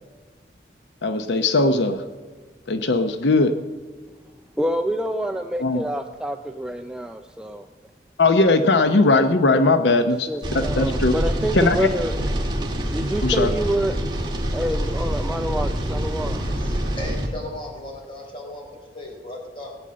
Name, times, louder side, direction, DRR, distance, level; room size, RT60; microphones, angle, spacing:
voice 1, 1.0-2.0 2.7-3.5 5.6-5.8 8.2-10.3 10.5-11.1 11.5-11.9 13.2-13.5, left 3 dB, 85° left, 8 dB, 0.8 m, -19 dB
voice 2, 4.6-7.7 10.0-12.2 12.9-14.0 14.5-16.4, right 1 dB, 5° right, 5 dB, 0.4 m, -27 dB
sound 1, 10.4-17.3, right 1 dB, 25° right, 1.9 m, -26 dB
voice 3, 16.3-19.8, left 1 dB, 30° left, 0 dB, 4.0 m, -36 dB
18.0 x 8.9 x 7.5 m, 1.5 s
head